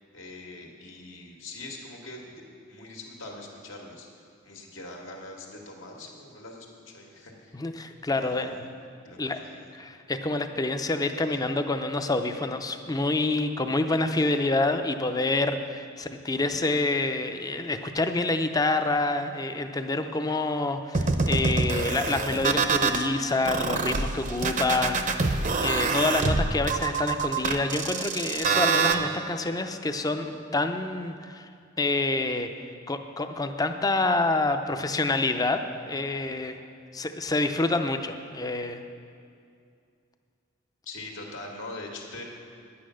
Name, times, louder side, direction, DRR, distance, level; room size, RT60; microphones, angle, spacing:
voice 1, 0.0-4.1 4.4-7.6 8.1-8.7 9.0-9.7 11.3-11.4 14.1-14.3 40.9-42.2, left 2 dB, 80° left, -1 dB, 1.8 m, -43 dB
voice 2, 7.5-8.7 9.2-9.4 9.7-31.5 31.8-32.5 32.9-36.6 36.9-38.8, left 2 dB, 20° left, 7 dB, 0.5 m, -27 dB
sound 1, 20.9-23.0 23.4-28.9, right 4 dB, 40° right, 0.6 m, -25 dB
10.5 x 8.6 x 6.3 m, 2.4 s
head